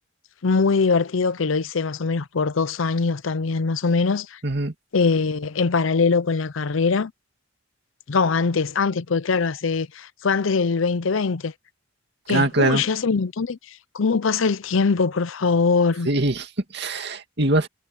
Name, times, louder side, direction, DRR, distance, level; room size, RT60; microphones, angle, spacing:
voice 1, 0.4-4.4 4.9-7.1 8.1-11.5 12.3-13.6 13.9-16.1, left 4 dB, 75° left, 0.6 m, -22 dB
voice 2, 4.4-4.7 12.3-12.8 16.1-17.7, right 2 dB, 55° right, 2.4 m, -22 dB
head